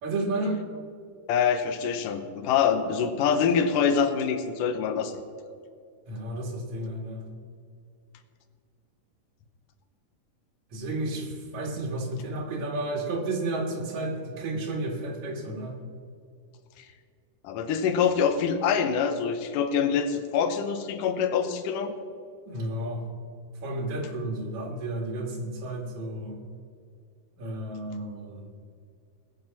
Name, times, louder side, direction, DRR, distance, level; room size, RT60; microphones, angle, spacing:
voice 1, 0.0-0.6 6.1-7.2 10.7-15.7 22.5-23.0 23.6-26.4 27.4-28.5, right 2 dB, 65° right, 3 dB, 2.9 m, -32 dB
voice 2, 1.3-5.1 17.4-22.0, left 7 dB, 90° left, 9 dB, 2.5 m, -25 dB
20.0 x 7.0 x 5.7 m, 2.3 s
omnidirectional pair, 3.7 m